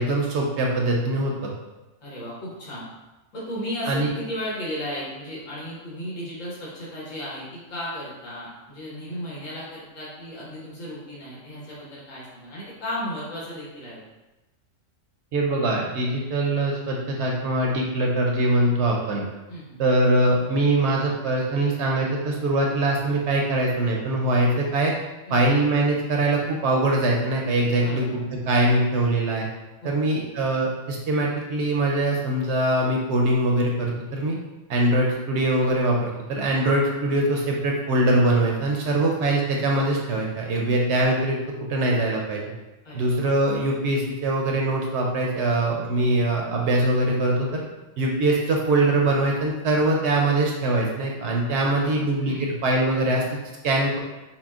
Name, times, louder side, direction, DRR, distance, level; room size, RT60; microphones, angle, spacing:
voice 1, 0.0-1.5 3.9-4.1 15.3-19.2 19.8-24.9 25.3-28.2 28.5-29.5 29.8-34.4 34.7-41.4 41.7-42.4 42.9-47.6 48.0-53.4 53.6-54.0, right 1 dB, 65° right, -1 dB, 0.8 m, -22 dB
voice 2, 2.0-2.9 3.3-14.0 19.5-19.8 25.3-25.6 27.8-28.2 29.8-30.2 42.8-43.2 46.1-46.2 51.6-52.5, equal, 85° left, -7 dB, 1.6 m, -35 dB
5.6 x 2.1 x 2.4 m, 1.1 s
omnidirectional pair, 1.3 m